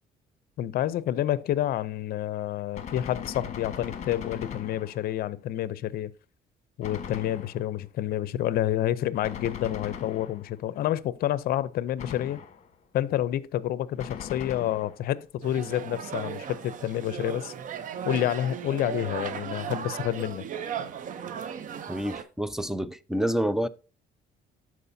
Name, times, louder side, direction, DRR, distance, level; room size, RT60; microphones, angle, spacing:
voice 1, 0.6-6.1 6.8-12.4 12.9-17.5 18.0-20.4, left 12 dB, 65° left, 0.5 m, -29 dB
Gunshot gunfire, 2.7-5.3 6.8-7.9 9.2-10.7 12.0-12.8 14.0-15.1, left 7 dB, 45° left, 1.3 m, -40 dB
sound 1, 15.4-22.2, right 8 dB, 50° right, 0.7 m, -36 dB
voice 2, 21.9-23.7, equal, 5° right, 0.4 m, -28 dB
12.5 x 4.7 x 2.7 m
cardioid pair, 110°, 17 cm